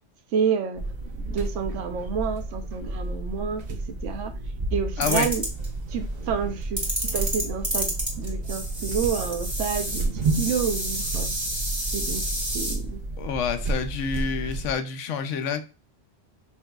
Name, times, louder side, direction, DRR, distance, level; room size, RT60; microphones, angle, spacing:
voice 1, 0.3-0.8 1.2-4.3 4.7-5.4 5.9-7.9 8.2-11.3 11.9-12.2 12.5-13.0, right 7 dB, 75° right, 1.0 m, -29 dB
sound 1, 0.8-14.7, right 2 dB, 45° right, 0.6 m, -31 dB
voice 2, 5.0-5.3 13.2-15.6, left 6 dB, 80° left, 0.9 m, -28 dB
sound 2, 5.0-5.7 6.8-12.8, right 1 dB, 15° right, 1.7 m, -30 dB
5.7 x 2.7 x 2.3 m
omnidirectional pair, 1.3 m